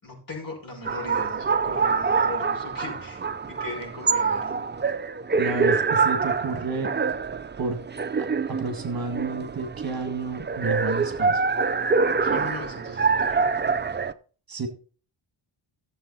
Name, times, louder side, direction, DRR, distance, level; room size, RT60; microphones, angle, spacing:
voice 1, 0.0-4.6 12.2-13.5, left 3 dB, 40° left, 0 dB, 6.1 m, -38 dB
sound 1, 0.8-14.1, right 5 dB, 20° right, 0.5 m, -25 dB
voice 2, 5.4-6.9 7.6-7.8 8.2-11.4 14.5-14.7, right 4 dB, 45° right, 6 dB, 1.7 m, -30 dB
13.0 x 7.5 x 4.1 m, 0.39 s
wide cardioid pair, 100°, 49 cm